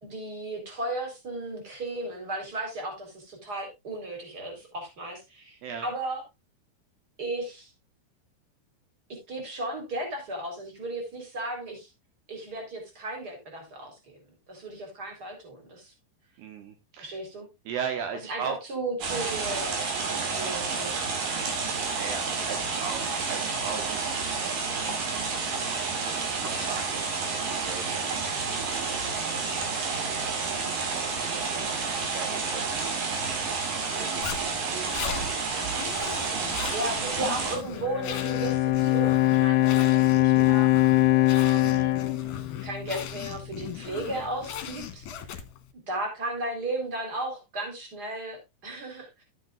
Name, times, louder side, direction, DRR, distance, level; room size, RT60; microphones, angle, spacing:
voice 1, 0.0-6.2 7.2-7.7 9.3-11.9 12.3-14.2 14.5-15.9 17.0-17.5 18.1-21.1 31.5-31.9 36.7-40.7 41.3-41.9 42.6-45.0 45.9-49.2, right 2 dB, 25° right, 3 dB, 4.1 m, -35 dB
voice 2, 16.4-17.2 17.7-18.6 21.9-24.8 25.7-30.5 30.9-33.2 33.9-35.6 36.3-36.7, right 7 dB, 75° right, 6 dB, 3.3 m, -39 dB
sound 1, 19.0-37.6, right 4 dB, 55° right, 3.9 m, -30 dB
Zipper (clothing), 34.2-45.7, left 9 dB, 60° left, 2.5 m, -38 dB
Bowed string instrument, 37.8-43.2, left 16 dB, 80° left, 2.5 m, -22 dB
13.0 x 9.1 x 2.5 m, 0.22 s
omnidirectional pair, 4.9 m